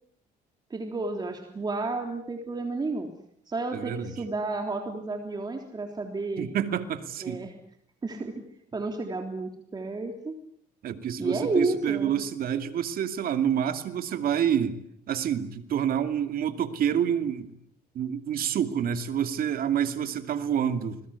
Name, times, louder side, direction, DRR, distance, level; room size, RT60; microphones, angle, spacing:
voice 1, 0.7-3.1 3.5-6.5 7.2-7.5 8.0-8.4 8.7-10.4 11.2-12.1, right 3 dB, 25° right, 3 dB, 3.5 m, -31 dB
voice 2, 3.7-4.1 6.4-7.4 10.8-14.8 15.1-17.5 17.9-21.0, right 9 dB, 60° right, 8 dB, 2.5 m, -28 dB
28.5 x 21.0 x 8.4 m, 0.70 s
cardioid pair, 110°, 17 cm